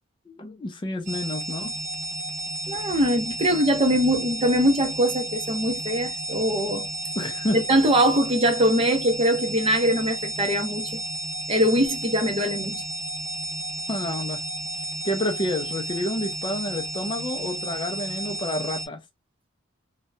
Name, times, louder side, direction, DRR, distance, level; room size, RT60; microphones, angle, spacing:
voice 1, 0.3-1.7 7.2-7.6 13.9-14.4 15.0-19.0, left 1 dB, 25° left, 0.4 m, -29 dB
sound 1, 1.1-18.9, right 1 dB, 45° right, 1.1 m, -32 dB
voice 2, 2.7-6.9 7.7-10.9 11.5-12.8, equal, 25° right, 0.6 m, -22 dB
2.7 x 2.1 x 2.3 m
head